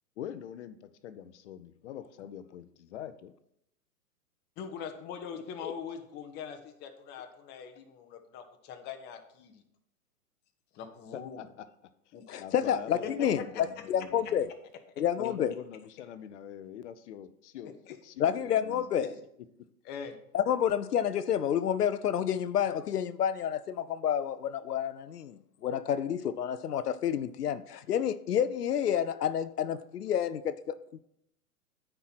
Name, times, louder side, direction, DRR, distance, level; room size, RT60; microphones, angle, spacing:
voice 1, 0.2-2.6 2.9-3.3 5.3-5.7 11.1-11.7 12.1-14.5 15.2-18.9, left 10 dB, 50° left, 0.8 m, -44 dB
voice 2, 4.6-9.6 10.8-11.4 12.1-12.4 13.0-13.1 19.0-19.1 19.9-20.2, left 7 dB, 20° left, 1.0 m, -42 dB
voice 3, 12.3-14.5 15.0-15.5 18.2-19.2 20.3-31.0, left 9 dB, 85° left, 0.6 m, -29 dB
9.2 x 4.6 x 5.9 m
hypercardioid pair, 125°, 46 cm